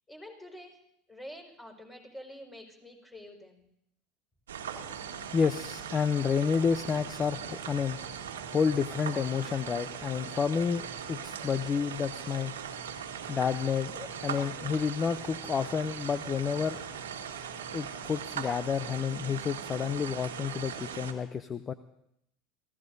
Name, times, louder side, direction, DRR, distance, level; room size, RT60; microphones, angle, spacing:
voice 1, 0.1-0.8 1.1-3.6, equal, 10° left, 2 dB, 5.0 m, -47 dB
sound 1, 4.5-21.1, right 7 dB, 85° right, 1.5 m, -40 dB
voice 2, 5.3-8.0 8.5-12.5 13.3-16.8 17.7-21.7, left 6 dB, 30° left, 13 dB, 0.6 m, -30 dB
27.5 x 16.0 x 2.7 m, 0.78 s
hypercardioid pair, 80°, 0 cm